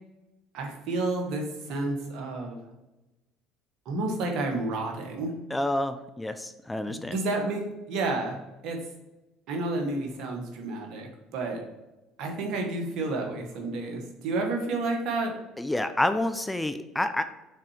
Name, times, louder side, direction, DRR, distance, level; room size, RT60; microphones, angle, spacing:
voice 1, 0.5-2.6 3.8-5.3 6.9-8.4 8.6-8.8 9.5-11.6 12.2-15.3, right 2 dB, 65° right, 2 dB, 1.6 m, -30 dB
voice 2, 5.5-7.2 15.6-17.2, left 1 dB, 10° left, 10 dB, 0.5 m, -28 dB
6.3 x 4.2 x 5.0 m, 1.0 s
hypercardioid pair, 70°, 0 cm